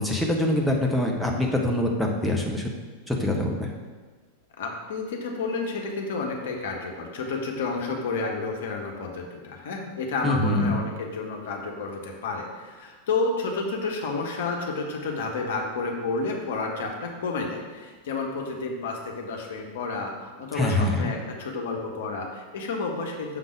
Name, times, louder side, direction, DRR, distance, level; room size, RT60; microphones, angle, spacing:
voice 1, 0.0-2.7 3.1-3.7 10.2-10.8 20.5-21.1, left 1 dB, ahead, -1 dB, 0.9 m, -24 dB
voice 2, 4.6-23.4, left 3 dB, 60° left, 1 dB, 1.1 m, -30 dB
6.7 x 3.9 x 6.1 m, 1.4 s
figure-of-eight pair, 90°, 0 cm